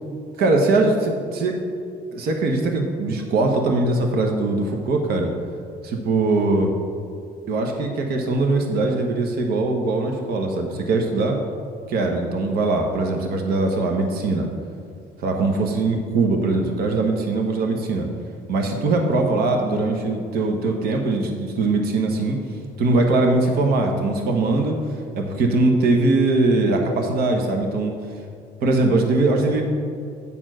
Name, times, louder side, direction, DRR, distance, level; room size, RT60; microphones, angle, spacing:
voice 1, 0.4-1.6 2.1-5.3 5.8-6.7 7.5-11.4 11.9-14.5 15.2-18.1 18.5-22.4 22.8-24.8 25.2-27.9 28.6-29.6, right 2 dB, 65° right, 3 dB, 1.1 m, -21 dB
8.7 x 4.5 x 6.2 m, 2.4 s
cardioid pair, 110°, 17 cm